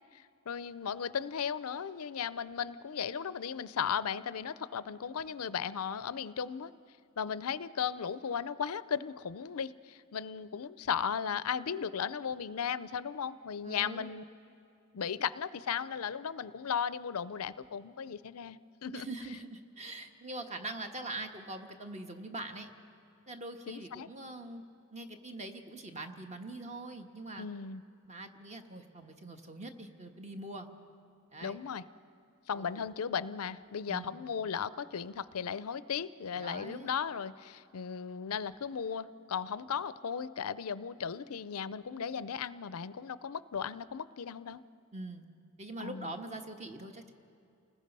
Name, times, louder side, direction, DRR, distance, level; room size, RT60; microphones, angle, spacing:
voice 1, 0.5-6.7 7.2-14.2 14.9-19.1 23.7-24.1 27.4-27.8 31.4-31.8 32.5-44.6 45.8-46.1, left 7 dB, 80° left, 16 dB, 0.5 m, -36 dB
voice 2, 13.6-14.1 18.9-22.7 23.3-24.6 24.9-27.5 28.0-30.7 31.3-31.6 32.5-32.8 33.9-34.2 36.4-36.9 44.9-45.2 45.6-47.1, right 2 dB, 30° right, 5 dB, 1.4 m, -43 dB
29.5 x 20.0 x 5.5 m, 2.6 s
head